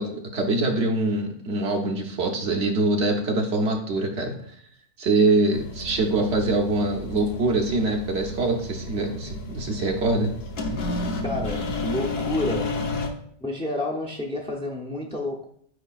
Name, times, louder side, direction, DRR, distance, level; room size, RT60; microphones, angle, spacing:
voice 1, 0.0-4.6 5.0-10.3, right 2 dB, 85° right, 1 dB, 1.2 m, -24 dB
sound 1, 5.5-13.1, left 2 dB, 65° left, 1.0 m, -32 dB
voice 2, 11.2-12.8 13.4-15.5, left 2 dB, 10° left, 0 dB, 0.4 m, -29 dB
8.1 x 4.8 x 2.4 m, 0.64 s
omnidirectional pair, 1.1 m